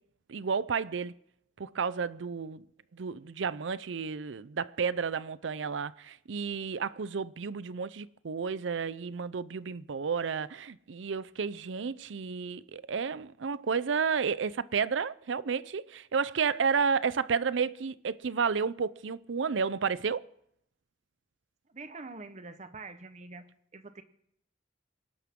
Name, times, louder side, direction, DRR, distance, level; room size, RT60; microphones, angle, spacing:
voice 1, 0.3-1.1 1.6-2.6 2.9-20.2, right 5 dB, 80° right, 0.5 m, -31 dB
voice 2, 21.7-23.4 23.7-24.0, right 3 dB, 40° right, 1.0 m, -45 dB
26.0 x 12.0 x 3.7 m
head